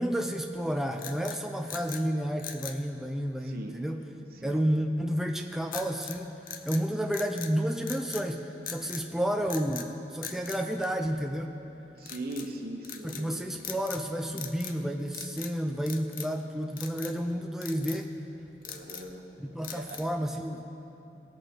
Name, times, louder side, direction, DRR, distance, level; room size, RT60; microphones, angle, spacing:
voice 1, 0.0-4.0 4.4-6.3 6.7-11.5 13.0-18.1 19.4-20.7, equal, ahead, 4 dB, 0.4 m, -31 dB
sound 1, 1.0-2.1 2.4-2.8 5.7-6.2 6.5-7.5 7.8-8.3 8.7-9.1 9.5-9.9 10.2-11.4 12.0-12.5 12.8-13.3 13.6-14.1 14.3-14.8 15.1-15.5 15.9-16.4 16.8-17.2 17.6-18.0 18.5-19.1 19.6-20.2, left 8 dB, 55° left, 0.7 m, -41 dB
voice 2, 3.4-3.8 4.3-4.6 12.0-13.4 18.6-19.3 19.7-20.0 21.1-21.2, right 1 dB, 60° right, 4 dB, 1.0 m, -40 dB
18.5 x 8.1 x 4.4 m, 2.9 s
head